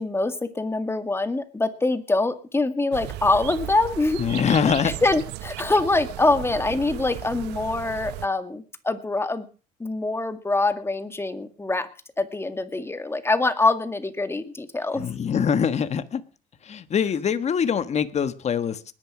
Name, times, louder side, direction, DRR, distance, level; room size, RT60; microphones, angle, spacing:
voice 1, 0.0-4.2 4.8-9.5 9.8-11.9 12.2-15.1, left 2 dB, 15° left, 2.1 m, -24 dB
sound 1, 2.9-8.3, right 16 dB, 85° right, 0.8 m, -36 dB
voice 2, 4.2-4.9 15.0-16.2 16.6-18.9, left 7 dB, 40° left, 1.6 m, -24 dB
20.0 x 11.0 x 6.2 m
cardioid pair, 110°, 17 cm